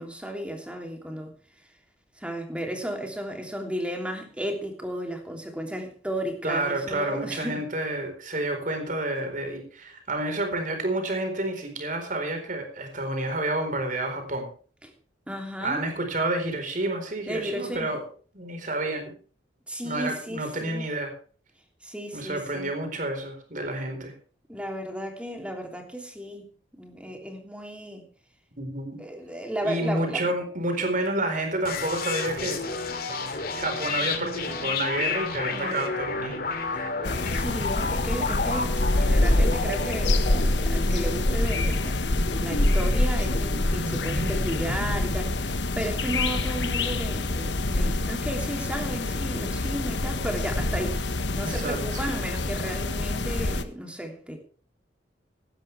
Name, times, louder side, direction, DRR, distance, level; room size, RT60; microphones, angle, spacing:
voice 1, 0.0-1.3 2.2-7.7 14.8-14.9 15.3-15.8 17.3-18.0 19.7-20.9 21.8-22.7 24.5-28.1 29.0-30.3 35.5-35.8 37.3-54.4, right 1 dB, 5° right, 3 dB, 3.0 m, -34 dB
voice 2, 6.4-14.5 15.6-18.1 18.3-19.1 19.8-21.1 22.1-24.1 28.6-29.0 29.6-32.6 33.5-37.0 51.4-52.0, right 2 dB, 50° right, 5 dB, 4.4 m, -29 dB
sound 1, 31.6-45.3, left 3 dB, 55° left, 2.4 m, -32 dB
sound 2, 37.0-53.6, left 2 dB, 85° left, 1.4 m, -26 dB
17.0 x 12.5 x 3.4 m, 0.41 s
head